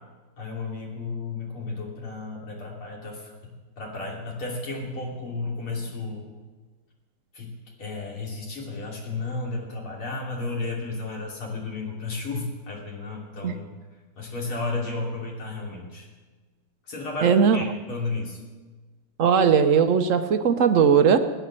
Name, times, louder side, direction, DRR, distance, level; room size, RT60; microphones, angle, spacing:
voice 1, 0.4-6.3 7.3-13.7 14.2-16.1 16.9-18.4, left 3 dB, 80° left, -2 dB, 3.9 m, -33 dB
voice 2, 17.2-17.6 19.2-21.2, right 7 dB, 55° right, 8 dB, 0.9 m, -18 dB
19.5 x 9.6 x 7.5 m, 1.3 s
omnidirectional pair, 2.3 m